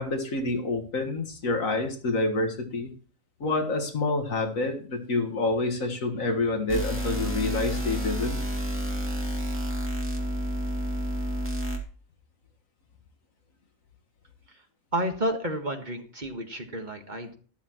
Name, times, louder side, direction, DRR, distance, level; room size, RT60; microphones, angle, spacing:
voice 1, 0.0-2.9 3.4-8.4, left 2 dB, 75° left, 4 dB, 2.1 m, -28 dB
sound 1, 6.7-11.8, equal, 10° right, 2.4 m, -30 dB
voice 2, 14.9-17.4, right 1 dB, 35° right, 4 dB, 1.7 m, -31 dB
12.5 x 12.5 x 3.1 m, 0.41 s
omnidirectional pair, 1.4 m